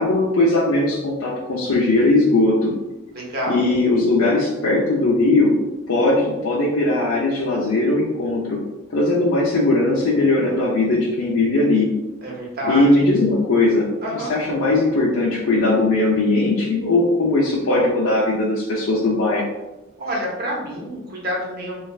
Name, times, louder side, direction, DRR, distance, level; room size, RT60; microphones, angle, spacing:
voice 1, 0.0-2.7 3.5-5.5 5.9-8.6 8.9-11.9 12.7-19.4, left 2 dB, 90° left, -5 dB, 0.5 m, -19 dB
voice 2, 3.1-3.7 12.2-12.8 14.0-14.3 20.0-21.8, equal, 45° right, -3 dB, 0.8 m, -27 dB
3.2 x 2.3 x 2.3 m, 1.0 s
head